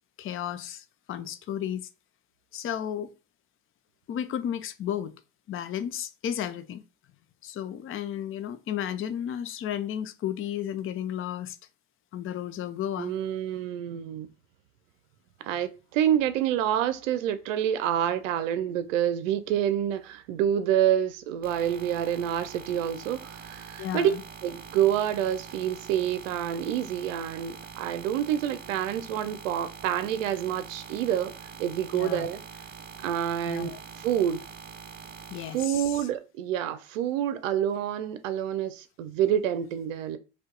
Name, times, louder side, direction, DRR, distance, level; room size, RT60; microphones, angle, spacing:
voice 1, 0.2-1.9 2.5-3.1 4.1-5.1 5.5-6.8 7.4-11.6 12.1-13.1 23.8-24.2 31.9-32.3 33.5-33.8 35.3-35.8, left 10 dB, 30° left, 0.6 m, -33 dB
voice 2, 13.0-14.3 15.4-24.1 24.4-32.4 33.0-34.4 35.5-40.2, right 10 dB, 70° right, 0.6 m, -28 dB
sound 1, 21.4-35.6, right 6 dB, 25° right, 0.8 m, -44 dB
5.0 x 2.4 x 3.8 m
figure-of-eight pair, 60°, 40 cm